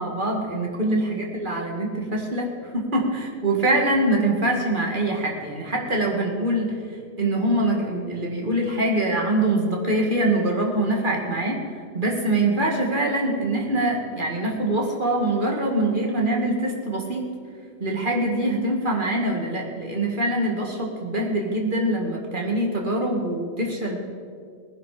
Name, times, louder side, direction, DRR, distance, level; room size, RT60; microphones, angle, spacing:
voice 1, 0.0-6.7 7.2-11.6 11.9-17.3 17.8-24.0, right 1 dB, 45° right, 0 dB, 2.2 m, -24 dB
19.0 x 10.5 x 5.0 m, 2.2 s
omnidirectional pair, 1.2 m